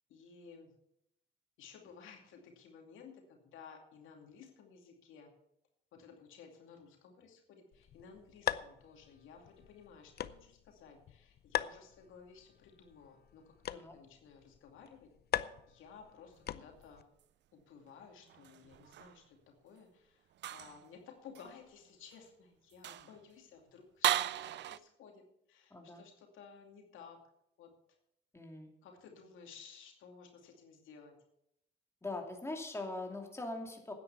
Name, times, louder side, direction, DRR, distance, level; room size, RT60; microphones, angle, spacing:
voice 1, 0.1-0.7 1.6-5.3 5.9-15.1 15.7-17.0 17.5-27.2 27.6-27.7 28.8-31.1, left 6 dB, 85° left, 2 dB, 2.5 m, -56 dB
sound 1, 7.7-17.0, left 10 dB, 55° left, 0.6 m, -42 dB
sound 2, 18.3-19.2 20.4-20.9 21.3-21.5 22.1-22.2 22.7-23.2 24.0-24.8, right 12 dB, 65° right, 0.5 m, -36 dB
voice 2, 25.7-26.0 28.3-28.7 32.0-33.9, left 2 dB, 15° left, 2 dB, 2.7 m, -41 dB
9.8 x 9.3 x 7.1 m, 0.78 s
cardioid pair, 90°, 20 cm